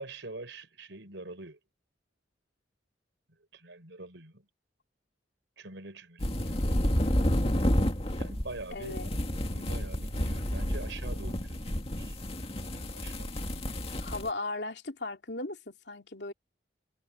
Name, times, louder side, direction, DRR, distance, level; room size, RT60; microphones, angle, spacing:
voice 1, 0.0-1.6 3.5-4.5 5.6-6.6 8.2-9.1 9.5-12.2 12.7-13.7, right 2 dB, 75° right, 4.9 m, -45 dB
sound 1, 6.2-14.3, equal, 30° left, 2.2 m, -30 dB
voice 2, 8.7-9.1 14.0-16.3, left 2 dB, 60° left, 3.0 m, -37 dB
head